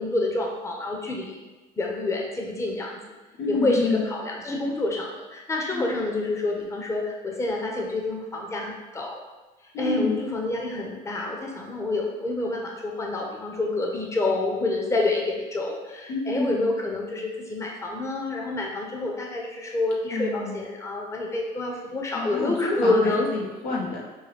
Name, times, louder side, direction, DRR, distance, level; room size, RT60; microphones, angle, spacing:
voice 1, 0.0-1.4 1.8-2.9 3.5-9.2 9.8-23.3, left 2 dB, 15° left, 0 dB, 0.6 m, -28 dB
voice 2, 3.4-4.0 5.7-5.9 9.7-10.2 16.1-16.5 20.1-20.5 22.1-24.1, left 3 dB, 90° left, -3 dB, 1.0 m, -28 dB
5.3 x 2.2 x 3.4 m, 1.2 s
cardioid pair, 110°, 17 cm